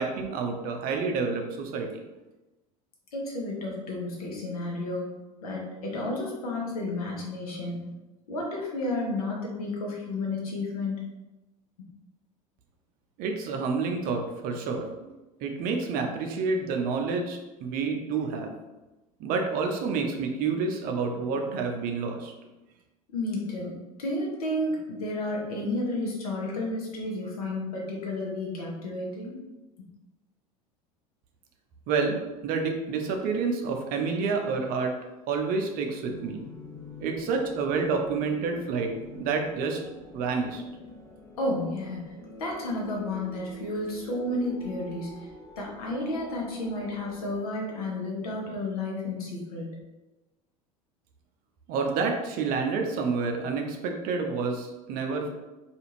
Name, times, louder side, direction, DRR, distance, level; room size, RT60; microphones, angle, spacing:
voice 1, 0.0-1.9 13.2-15.1 15.4-18.5 19.2-22.3 31.9-32.2 32.4-34.9 35.3-36.5 37.0-39.8 40.1-40.6 51.7-55.3, right 4 dB, 50° right, 3 dB, 0.6 m, -29 dB
voice 2, 3.1-5.1 5.4-7.9 8.3-11.0 23.1-29.4 41.4-42.0 42.4-45.2 45.6-49.8, left 2 dB, 80° left, -2 dB, 0.8 m, -32 dB
sound 1, 36.0-47.4, left 1 dB, 15° left, 0.7 m, -46 dB
2.5 x 2.4 x 3.0 m, 1.1 s
hypercardioid pair, 80°, 19 cm